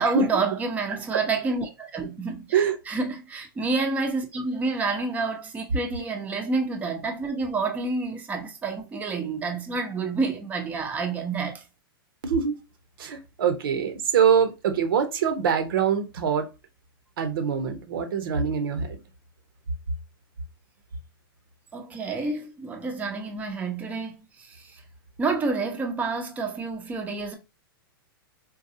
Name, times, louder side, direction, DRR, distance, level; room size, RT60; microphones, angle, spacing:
voice 1, 0.0-11.6 21.7-24.8 25.2-27.3, right 3 dB, 10° right, 0.6 m, -29 dB
voice 2, 12.2-12.6 13.0-16.5 17.2-19.0, right 7 dB, 70° right, 0.9 m, -24 dB
3.9 x 2.3 x 2.7 m
hypercardioid pair, 130°, 12 cm